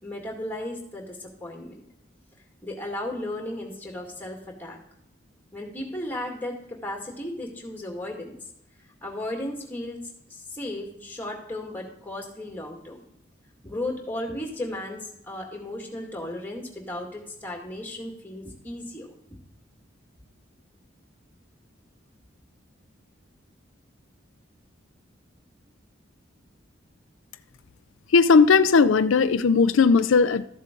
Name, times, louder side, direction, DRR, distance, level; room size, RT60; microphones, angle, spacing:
voice 1, 0.0-1.8 2.6-4.8 5.5-8.4 9.0-13.0 13.6-19.2, left 1 dB, 10° left, 2.0 m, -35 dB
voice 2, 28.1-30.5, left 5 dB, 90° left, 0.4 m, -17 dB
13.5 x 7.5 x 3.8 m
head